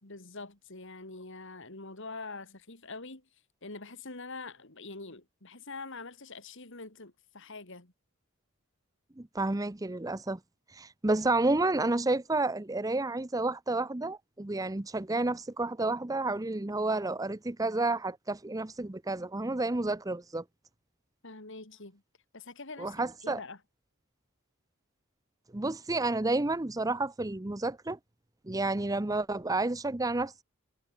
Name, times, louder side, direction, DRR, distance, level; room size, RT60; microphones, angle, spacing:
voice 1, 0.0-3.2 3.6-7.9 21.2-22.0 22.3-23.6, left 3 dB, 55° left, 2.8 m, -44 dB
voice 2, 9.2-10.4 10.7-20.4 22.8-23.4 25.5-28.0 28.5-30.4, right 2 dB, 15° right, 0.6 m, -30 dB
head